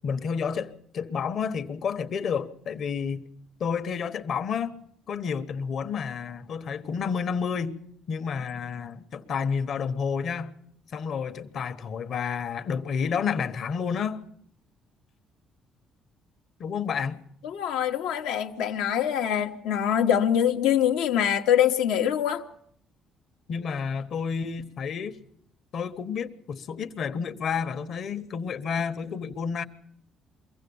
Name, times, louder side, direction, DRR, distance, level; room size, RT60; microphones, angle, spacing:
voice 1, 0.0-3.3 3.6-4.7 5.1-10.5 10.9-14.2 16.6-17.2 23.5-25.1 25.7-29.6, left 6 dB, 60° left, 1.2 m, -30 dB
voice 2, 17.4-22.4, left 9 dB, 85° left, 1.2 m, -24 dB
23.5 x 15.5 x 7.1 m
supercardioid pair, 70°, 0 cm